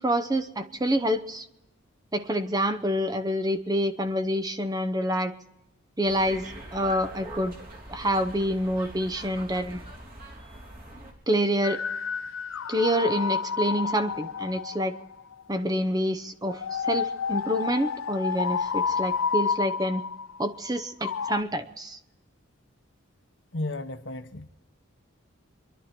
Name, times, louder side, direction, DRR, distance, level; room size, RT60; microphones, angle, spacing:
voice 1, 0.0-1.5 2.1-5.3 6.0-6.5 6.7-7.5 7.9-9.8 11.3-11.8 12.7-14.9 15.5-20.0 20.4-22.0, equal, 20° right, 0.8 m, -27 dB
sound 1, 6.0-11.1, right 1 dB, 45° right, 3.3 m, -42 dB
sound 2, 11.6-15.4 16.4-21.4, left 6 dB, 75° left, 0.5 m, -30 dB
voice 2, 23.5-24.5, left 2 dB, 60° left, 1.1 m, -33 dB
26.5 x 11.5 x 4.4 m
head